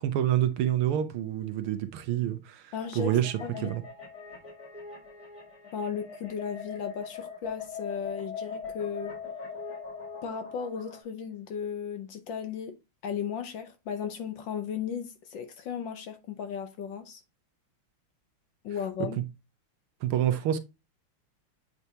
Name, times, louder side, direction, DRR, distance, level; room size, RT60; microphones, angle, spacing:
voice 1, 0.0-3.8 20.0-20.6, right 11 dB, 80° right, 1.6 m, -28 dB
voice 2, 2.7-3.7 5.7-9.1 10.2-12.8 13.0-17.2 18.6-19.2, left 7 dB, 65° left, 1.4 m, -35 dB
sound 1, 2.8-11.0, left 5 dB, 45° left, 2.2 m, -41 dB
8.1 x 4.7 x 2.8 m
omnidirectional pair, 2.4 m